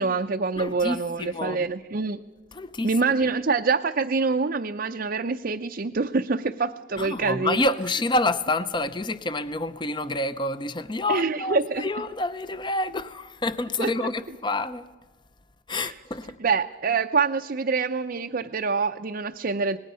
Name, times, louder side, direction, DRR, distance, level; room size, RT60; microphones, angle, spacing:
voice 1, 0.0-2.2 2.8-7.6 11.1-11.8 13.8-14.1 15.7-15.9 16.4-19.8, right 4 dB, 45° right, 0.6 m, -26 dB
voice 2, 0.6-1.6 2.5-2.9 7.0-14.8 15.7-16.4, left 2 dB, 20° left, 0.6 m, -28 dB
26.5 x 20.0 x 5.6 m
head